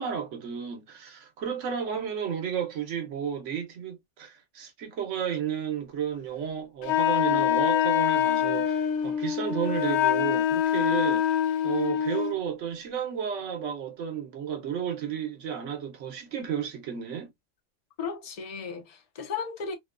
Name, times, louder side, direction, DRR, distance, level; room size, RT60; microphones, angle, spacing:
voice 1, 0.0-11.3 11.6-17.3, right 8 dB, 85° right, 1.1 m, -32 dB
Wind instrument woodwind instrument, 6.8-12.4, left 10 dB, 75° left, 0.9 m, -25 dB
voice 2, 18.0-19.8, left 5 dB, 45° left, 0.5 m, -35 dB
2.7 x 2.2 x 2.2 m
omnidirectional pair, 1.2 m